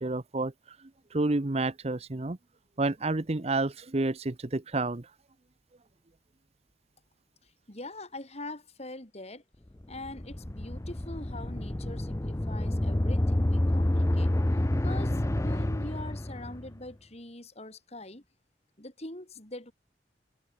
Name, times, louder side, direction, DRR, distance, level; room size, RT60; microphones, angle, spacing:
voice 1, 0.0-2.4 2.8-5.1, right 2 dB, 35° right, 0.8 m, -30 dB
voice 2, 7.4-9.4 9.9-14.3 14.8-18.2 18.8-19.7, left 2 dB, 35° left, 4.4 m, -43 dB
sound 1, 9.8-16.8, left 1 dB, 15° left, 0.6 m, -28 dB
head